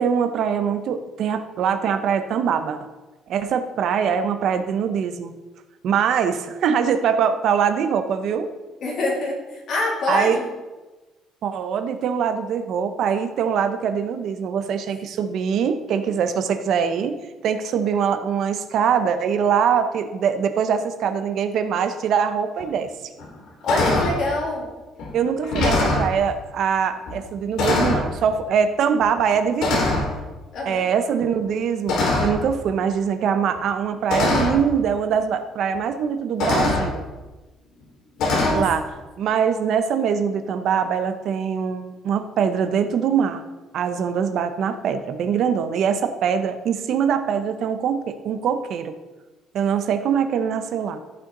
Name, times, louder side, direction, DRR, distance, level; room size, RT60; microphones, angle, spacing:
voice 1, 0.0-2.9 3.3-5.3 5.8-8.5 10.1-10.4 11.4-22.9 25.1-30.0 30.7-37.1 38.5-38.9 39.2-43.4 43.7-49.0 49.5-51.0, right 7 dB, 50° right, 9 dB, 0.7 m, -23 dB
voice 2, 8.8-10.5 23.6-24.7 30.5-30.8 38.3-38.7, left 1 dB, 45° left, -2 dB, 2.5 m, -25 dB
sound 1, 22.6-22.7 23.2-23.4 23.7-24.2 25.0-25.1 25.4-26.1 27.1-27.2 27.6-28.1 29.0-29.2 29.6-30.1 31.9-32.5 33.6-33.7 34.1-34.6 35.7-35.8 36.4-36.9 38.2-38.5, left 2 dB, 60° left, 2.6 m, -22 dB
14.5 x 5.7 x 3.9 m, 1.2 s
cardioid pair, 175°, 0 cm